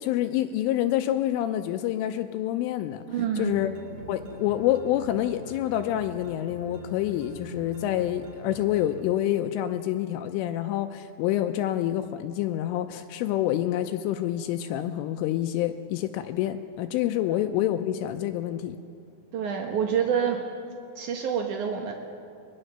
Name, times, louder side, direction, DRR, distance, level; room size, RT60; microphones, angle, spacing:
voice 1, 0.0-3.0 3.4-3.7 4.1-18.8, left 12 dB, 85° left, 7 dB, 3.1 m, -27 dB
voice 2, 3.1-3.6 17.3-17.4 19.3-20.4 21.0-21.9, right 7 dB, 80° right, 2 dB, 1.8 m, -27 dB
sound 1, 3.3-9.0, right 1 dB, 45° right, 2.3 m, -44 dB
23.0 x 21.0 x 6.7 m, 2.6 s
omnidirectional pair, 5.9 m